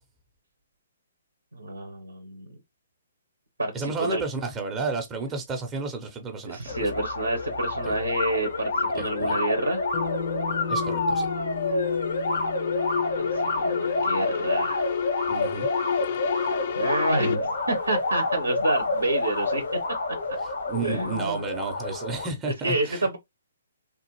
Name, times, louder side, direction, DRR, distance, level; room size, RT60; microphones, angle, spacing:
voice 1, 1.5-2.6 3.6-4.2 6.4-9.8 13.2-14.8 16.7-19.6 20.8-21.4 22.6-23.2, right 1 dB, 90° right, 0.7 m, -28 dB
voice 2, 3.7-6.8 9.0-9.4 10.7-11.3 15.3-15.7 20.7-23.1, right 4 dB, 20° right, 0.7 m, -32 dB
sound 1, 6.7-22.3, left 2 dB, 70° left, 0.9 m, -28 dB
sound 2, 7.3-17.4, left 8 dB, 50° left, 0.4 m, -32 dB
Bass guitar, 9.9-14.4, left 3 dB, 15° left, 0.7 m, -36 dB
3.3 x 2.4 x 3.0 m
figure-of-eight pair, 130°, 0 cm